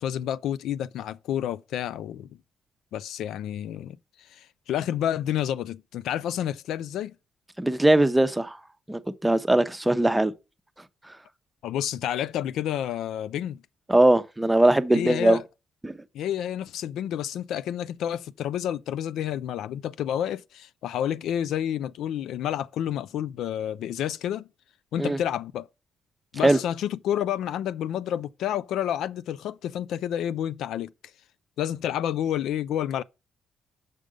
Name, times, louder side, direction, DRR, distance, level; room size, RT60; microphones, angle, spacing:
voice 1, 0.0-2.3 2.9-7.1 11.6-13.6 14.9-15.4 16.1-24.5 24.9-25.7 26.3-30.9 31.6-33.0, left 10 dB, 80° left, 0.4 m, -29 dB
voice 2, 7.6-8.6 8.9-10.3 13.9-15.4 15.8-16.0 25.0-25.2 26.4-26.6, right 1 dB, 10° right, 0.7 m, -20 dB
6.6 x 5.2 x 4.9 m
cardioid pair, 90°, 0 cm